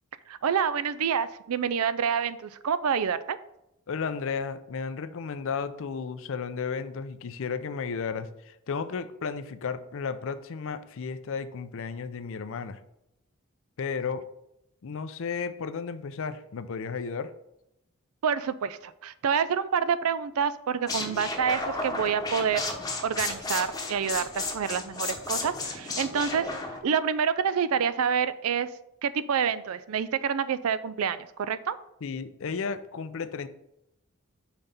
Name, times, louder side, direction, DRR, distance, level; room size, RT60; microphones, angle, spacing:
voice 1, 0.3-3.4 18.2-22.6 23.0-26.5 26.8-28.7 29.0-31.8, right 7 dB, 75° right, 15 dB, 0.4 m, -27 dB
voice 2, 3.9-12.8 13.8-14.2 14.8-17.3 32.0-33.5, left 5 dB, 65° left, 12 dB, 0.5 m, -33 dB
sound 1, 20.9-26.8, left 3 dB, 20° left, 1.0 m, -33 dB
5.8 x 4.1 x 5.2 m, 0.84 s
head